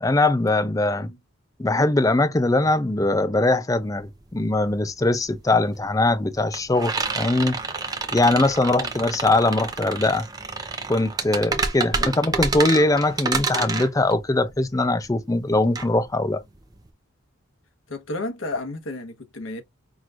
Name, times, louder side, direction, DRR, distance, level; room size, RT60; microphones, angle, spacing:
voice 1, 0.0-1.1 1.6-7.6 8.1-10.3 10.9-16.4, left 2 dB, 15° left, 0.5 m, -21 dB
sound 1, 3.8-3.9 4.2-16.9, right 4 dB, 20° right, 0.8 m, -29 dB
voice 2, 17.9-19.6, left 2 dB, 75° left, 1.2 m, -33 dB
5.8 x 3.1 x 2.5 m
head